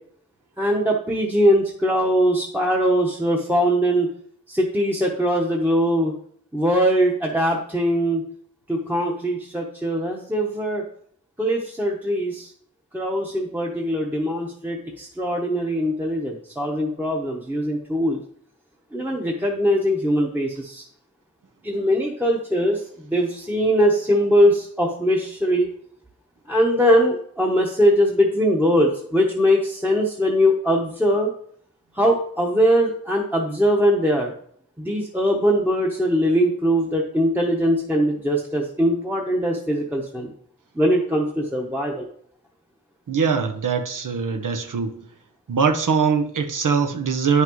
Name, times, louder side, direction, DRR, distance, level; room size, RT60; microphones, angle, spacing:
voice 1, 0.6-4.1 4.5-6.1 6.5-8.2 8.7-10.8 11.4-12.5 12.9-18.2 18.9-20.8 21.6-25.7 26.5-31.3 31.9-34.3 34.8-40.3 40.7-42.1, equal, 5° right, 1.0 m, -21 dB
voice 2, 43.1-44.9 45.5-47.4, right 5 dB, 75° right, 0.8 m, -22 dB
9.5 x 5.8 x 3.0 m
wide cardioid pair, 65°, 32 cm